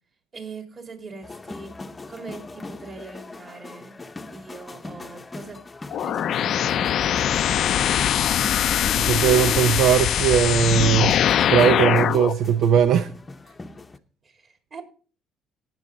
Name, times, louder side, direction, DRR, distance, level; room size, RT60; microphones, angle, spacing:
voice 1, 0.3-1.8 2.1-4.0 4.3-5.7 5.9-7.9 14.2-14.8, right 4 dB, 40° right, 3.1 m, -41 dB
sound 1, 1.2-14.0, left 2 dB, 20° left, 0.8 m, -40 dB
sound 2, 5.9-12.3, left 10 dB, 60° left, 0.5 m, -22 dB
voice 2, 9.0-11.2 11.5-13.1, right 8 dB, 70° right, 0.6 m, -19 dB
17.5 x 6.3 x 3.9 m
cardioid pair, 100°, 0 cm